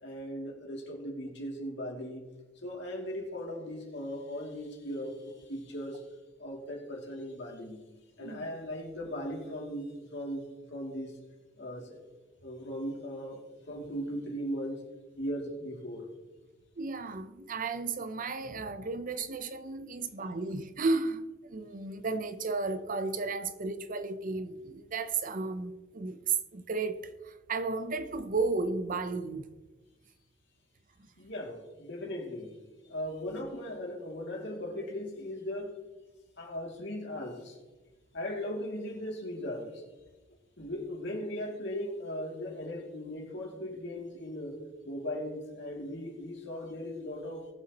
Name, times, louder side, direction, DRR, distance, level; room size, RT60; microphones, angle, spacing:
voice 1, 0.0-2.2 2.6-6.0 6.4-7.8 8.2-11.2 11.6-12.0 12.4-13.4 13.7-14.8 15.2-16.1 31.2-32.6 32.9-35.8 36.4-37.6 38.1-39.8 40.6-44.6 44.8-47.5, equal, 65° left, 2.6 m, -38 dB
voice 2, 16.8-29.5, right 3 dB, 45° right, 0.7 m, -33 dB
19.5 x 7.5 x 3.0 m
head